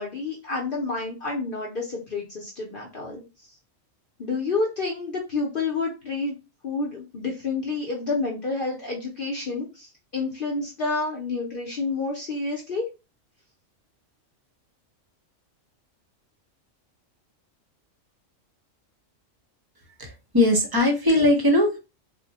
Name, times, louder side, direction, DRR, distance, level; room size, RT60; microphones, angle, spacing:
voice 1, 0.0-3.2 4.2-6.4 6.6-12.8, left 3 dB, 50° left, -1 dB, 0.8 m, -29 dB
voice 2, 20.0-21.8, left 1 dB, 25° right, 2 dB, 0.5 m, -20 dB
2.3 x 2.1 x 3.9 m, 0.28 s
omnidirectional pair, 1.3 m